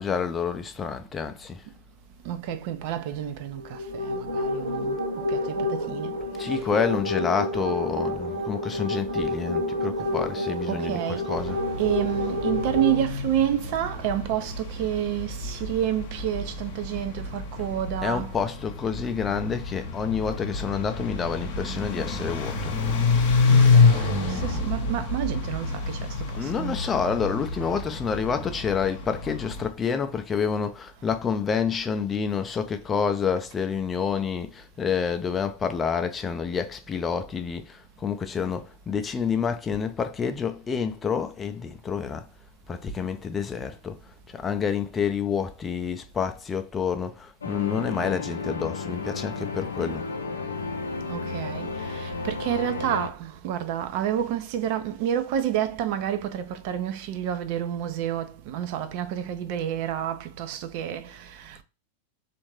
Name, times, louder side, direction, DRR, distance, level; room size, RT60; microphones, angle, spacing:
voice 1, 0.0-1.6 6.4-11.6 18.0-22.7 26.4-42.2 42.7-44.0 44.3-50.1, left 6 dB, 20° left, 0.4 m, -28 dB
voice 2, 2.2-6.2 6.5-6.7 10.0-10.1 10.7-11.5 11.8-18.4 23.5-26.8 51.1-61.6, right 10 dB, 45° right, 0.4 m, -29 dB
sound 1, 3.6-13.0, left 1 dB, 65° right, 1.2 m, -29 dB
sound 2, 11.3-29.7, left 4 dB, 50° left, 0.8 m, -27 dB
sound 3, 47.4-53.1, left 4 dB, 75° left, 0.5 m, -33 dB
3.5 x 2.5 x 3.1 m
figure-of-eight pair, 90°, 0 cm